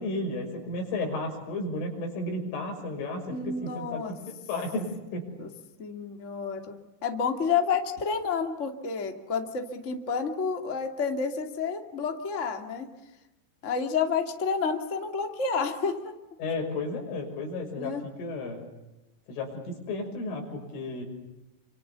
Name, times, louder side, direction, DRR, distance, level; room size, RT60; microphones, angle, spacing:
voice 1, 0.0-5.3 16.4-18.6 19.3-21.0, left 2 dB, 90° left, 2 dB, 8.7 m, -33 dB
voice 2, 3.3-4.1 5.4-5.5 5.8-12.9 13.6-15.9 17.8-18.0, left 5 dB, 25° left, 4 dB, 1.9 m, -30 dB
29.0 x 26.5 x 7.0 m, 0.97 s
omnidirectional pair, 5.5 m